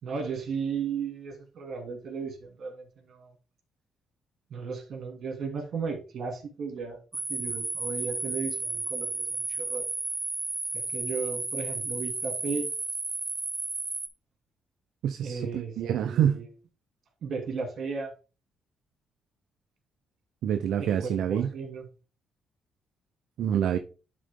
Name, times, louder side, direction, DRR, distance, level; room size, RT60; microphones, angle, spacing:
voice 1, 0.0-3.3 4.5-9.8 10.7-12.7 15.2-15.8 16.0-16.5 17.2-18.1 20.8-21.9, right 5 dB, 60° right, 2.7 m, -35 dB
sound 1, 7.1-14.1, right 2 dB, 20° right, 1.4 m, -33 dB
voice 2, 15.0-16.4 20.4-21.5 23.4-23.8, right 9 dB, 75° right, 0.5 m, -26 dB
11.0 x 3.9 x 3.6 m
cardioid pair, 90°, 0 cm